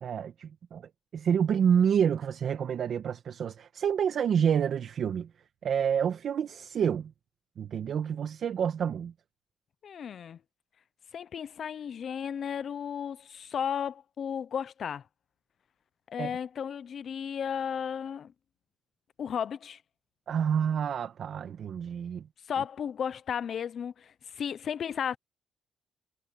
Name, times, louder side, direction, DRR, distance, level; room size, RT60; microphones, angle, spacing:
voice 1, 0.0-5.3 5.6-7.1 7.6-9.1 16.2-16.3 20.3-22.3, right 8 dB, 60° right, 1.6 m, -28 dB
voice 2, 9.8-10.4 11.1-15.0 16.1-18.3 19.2-19.8 22.5-25.2, left 8 dB, 55° left, 0.7 m, -34 dB
cardioid pair, 90°, 0 cm